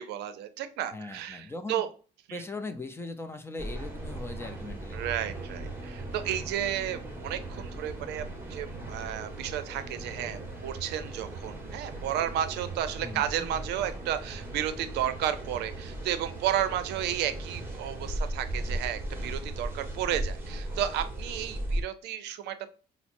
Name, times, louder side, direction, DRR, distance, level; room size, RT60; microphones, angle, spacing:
voice 1, 0.0-1.9 2.3-2.4 4.9-8.2 8.5-22.7, right 10 dB, 80° right, 0.5 m, -32 dB
voice 2, 0.9-1.8 2.3-5.0 13.0-13.5, left 2 dB, 15° left, 0.5 m, -39 dB
sound 1, 3.6-21.8, right 1 dB, 15° right, 1.1 m, -37 dB
5.6 x 2.0 x 2.5 m
cardioid pair, 110°, 17 cm